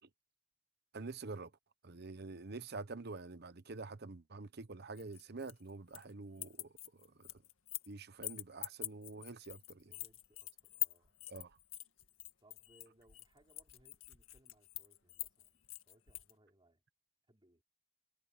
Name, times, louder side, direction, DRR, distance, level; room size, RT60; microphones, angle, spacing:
voice 1, 0.9-1.5 1.8-7.3 7.9-9.9 11.3-11.6, right 3 dB, 50° right, 1.0 m, -47 dB
sound 1, 5.0-6.1 6.4-7.9 8.2-16.3, left 16 dB, 80° left, 1.8 m, -44 dB
voice 2, 9.8-11.1 12.4-16.8 17.3-17.6, right 1 dB, 25° right, 5.4 m, -69 dB
head